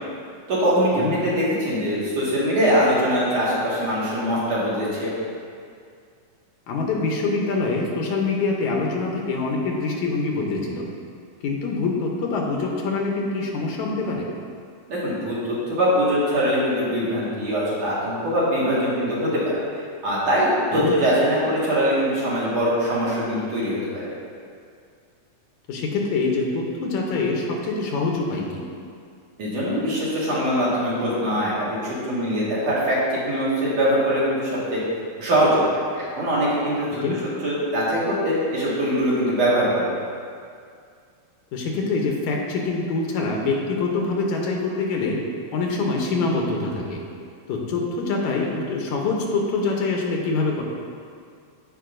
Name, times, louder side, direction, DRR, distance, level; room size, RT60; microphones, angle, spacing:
voice 1, 0.5-5.1 14.9-15.4 15.7-19.5 20.0-24.0 29.4-34.8 35.2-37.0 37.4-39.9, equal, 60° right, -8 dB, 2.9 m, -22 dB
voice 2, 6.7-10.9 11.4-14.3 20.7-20.9 25.7-28.6 37.0-37.2 41.5-45.2 45.5-47.0 47.5-50.6, left 3 dB, 75° left, 0 dB, 2.2 m, -25 dB
15.0 x 5.4 x 2.6 m, 2.3 s
omnidirectional pair, 3.5 m